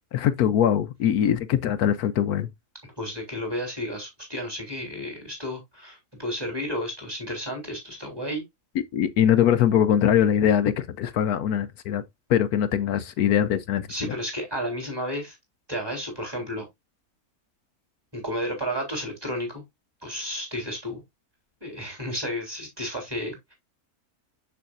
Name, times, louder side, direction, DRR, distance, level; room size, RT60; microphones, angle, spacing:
voice 1, 0.1-2.5 8.9-12.0 12.3-14.1, left 9 dB, 75° left, 1.1 m, -22 dB
voice 2, 3.0-8.4 13.9-15.4 15.7-16.7 18.1-19.6 20.0-21.0 21.6-23.5, equal, 15° right, 3.7 m, -32 dB
7.3 x 6.8 x 2.5 m
omnidirectional pair, 1.6 m